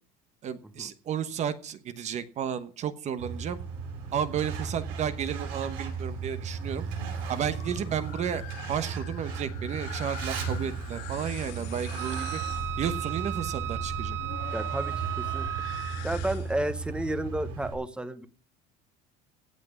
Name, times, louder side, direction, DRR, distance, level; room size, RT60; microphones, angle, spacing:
voice 1, 0.4-3.6 4.1-6.9 7.3-12.4 12.8-14.2, right 8 dB, 35° right, 12 dB, 1.1 m, -32 dB
Truck, 3.2-17.7, right 5 dB, 90° right, 7.3 m, -35 dB
sound 1, 6.7-16.7, left 11 dB, 75° left, 2.6 m, -44 dB
Wind instrument woodwind instrument, 12.0-16.2, right 15 dB, 75° right, 1.6 m, -35 dB
voice 2, 14.5-15.4 16.0-18.3, right 1 dB, 5° right, 11 dB, 1.1 m, -32 dB
17.0 x 6.0 x 9.5 m, 0.41 s
cardioid pair, 160°, 19 cm